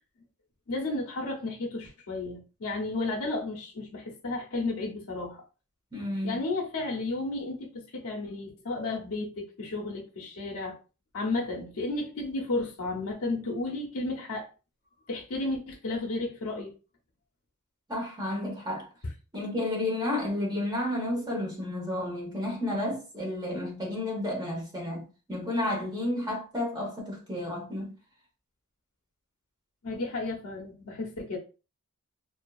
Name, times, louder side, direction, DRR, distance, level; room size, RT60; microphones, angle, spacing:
voice 1, 0.7-5.4 6.2-10.8 11.1-14.5 15.1-16.7 29.8-31.4, left 2 dB, 75° left, 0.7 m, -33 dB
voice 2, 5.9-6.4 17.9-18.9 19.3-27.9, left 1 dB, 20° right, 0.8 m, -31 dB
2.6 x 2.3 x 2.3 m
head